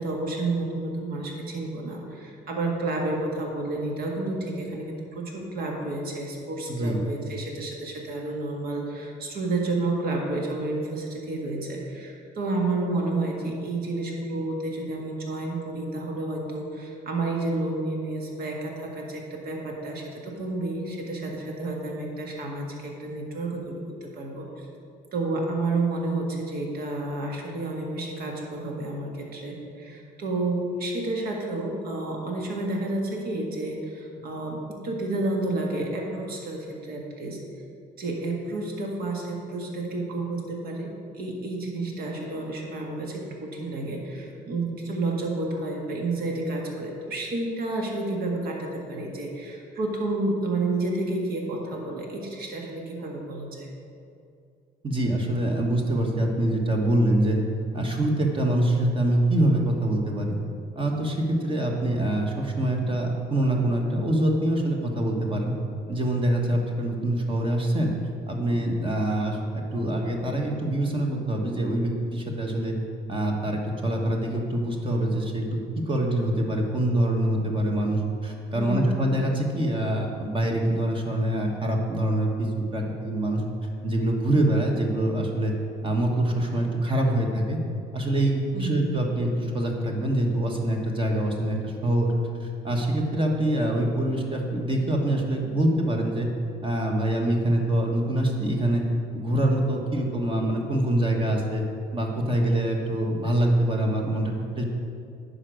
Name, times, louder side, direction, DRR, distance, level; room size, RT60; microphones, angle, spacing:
voice 1, 0.0-24.7 25.1-37.4 38.0-53.7 78.5-79.0 88.5-88.8, right 2 dB, 60° right, 0 dB, 1.9 m, -30 dB
voice 2, 6.7-7.0 54.8-57.4 57.7-60.4 60.7-65.5 65.9-67.9 68.3-72.7 73.1-75.6 75.8-83.4 83.8-85.5 85.8-87.6 87.9-92.1 92.4-96.3 96.6-98.8 99.1-101.6 101.9-104.6, right 1 dB, 30° right, 1 dB, 1.2 m, -25 dB
9.6 x 5.1 x 6.3 m, 2.4 s
cardioid pair, 110°, 17 cm